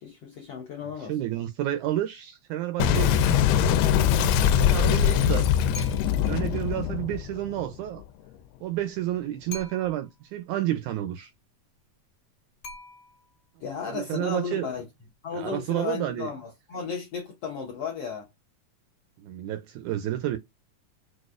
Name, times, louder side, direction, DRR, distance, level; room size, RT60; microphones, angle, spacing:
voice 1, 0.0-1.2 13.6-14.8 15.2-18.3, left 6 dB, 70° left, 1.5 m, -34 dB
voice 2, 1.0-3.2 4.6-5.5 6.3-8.0 8.6-11.3 13.9-14.7 15.3-16.3 19.2-20.4, right 13 dB, 80° right, 1.8 m, -30 dB
Boom, 2.8-8.0, left 9 dB, 85° left, 2.1 m, -22 dB
sound 1, 5.7-6.4 9.5-10.2 12.6-13.4, left 2 dB, 45° left, 1.0 m, -43 dB
6.2 x 2.4 x 2.4 m
omnidirectional pair, 3.8 m